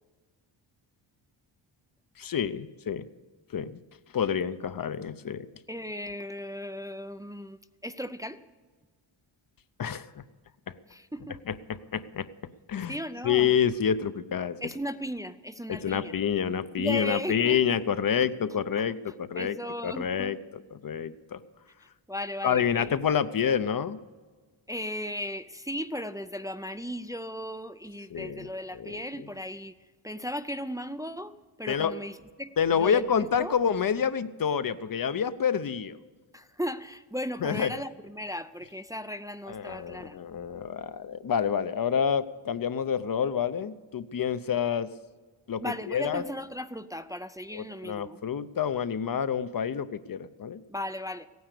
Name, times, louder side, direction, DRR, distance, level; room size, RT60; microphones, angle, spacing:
voice 1, 2.2-3.1 3.5-3.8 4.1-5.5 9.8-10.1 10.7-10.8 11.5-12.3 12.7-13.0 13.2-14.6 15.7-19.6 19.8-21.4 22.4-24.0 28.1-29.3 31.7-32.0 32.6-36.0 37.4-37.7 39.5-44.9 45.5-46.2 47.5-50.6, left 7 dB, 45° left, 13 dB, 0.7 m, -28 dB
voice 2, 5.7-8.4 10.9-11.4 12.9-13.5 14.6-16.1 16.8-17.6 19.4-20.4 22.1-22.9 24.7-29.8 30.0-33.6 36.3-40.2 45.6-48.2 50.7-51.3, equal, 10° right, 11 dB, 0.4 m, -36 dB
16.0 x 9.5 x 6.7 m, 1.4 s
cardioid pair, 90°, 48 cm